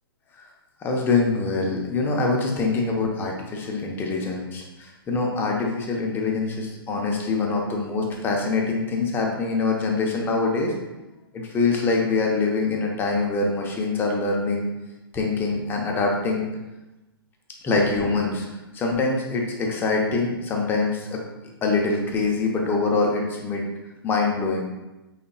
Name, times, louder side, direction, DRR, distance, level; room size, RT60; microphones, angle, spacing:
voice 1, 0.8-10.7 11.3-14.6 15.1-16.5 17.6-18.5 18.7-21.1 21.6-23.6 24.0-24.7, left 3 dB, 15° left, 0 dB, 0.8 m, -24 dB
4.9 x 4.1 x 2.3 m, 1.0 s
hypercardioid pair, 125°, 13 cm